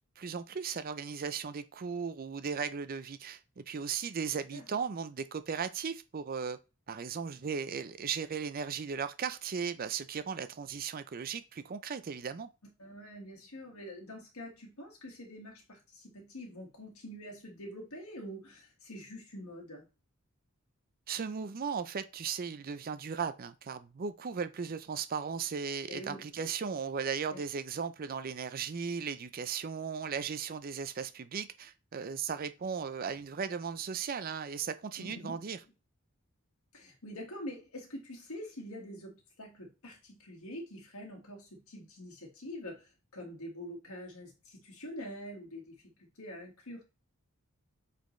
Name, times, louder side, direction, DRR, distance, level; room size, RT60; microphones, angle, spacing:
voice 1, 0.2-6.6 6.9-12.5 21.1-35.6, right 6 dB, 40° right, 0.4 m, -36 dB
voice 2, 12.8-19.9 25.9-26.3 27.3-27.4 35.0-35.4 36.7-46.8, equal, 75° left, 1.8 m, -45 dB
8.0 x 4.2 x 3.1 m
head